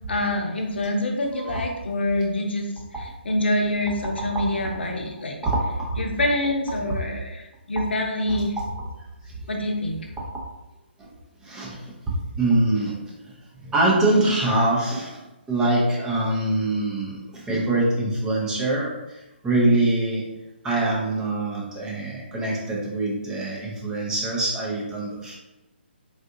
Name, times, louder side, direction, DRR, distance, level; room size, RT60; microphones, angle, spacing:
voice 1, 0.1-2.7 3.2-5.4 6.0-8.5 9.5-10.0, left 1 dB, 65° left, 2 dB, 0.7 m, -25 dB
voice 2, 4.2-4.5 5.4-5.7 8.3-8.4 11.4-13.0 13.6-20.3 20.6-25.3, right 2 dB, 10° right, -4 dB, 0.6 m, -24 dB
3.6 x 2.5 x 2.6 m, 0.98 s
figure-of-eight pair, 140°, 6 cm